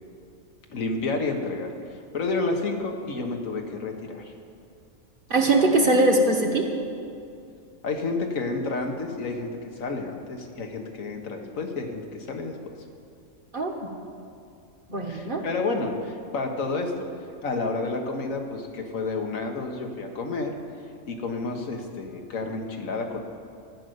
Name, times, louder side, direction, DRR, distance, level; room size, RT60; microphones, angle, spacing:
voice 1, 0.7-4.3 7.8-12.6 15.1-17.1 17.4-20.6 21.1-23.2, left 3 dB, 85° left, 3 dB, 1.6 m, -30 dB
voice 2, 5.3-6.7 13.5-13.7 14.9-15.4, right 2 dB, 45° right, 2 dB, 1.3 m, -21 dB
13.5 x 6.4 x 9.4 m, 2.4 s
omnidirectional pair, 1.4 m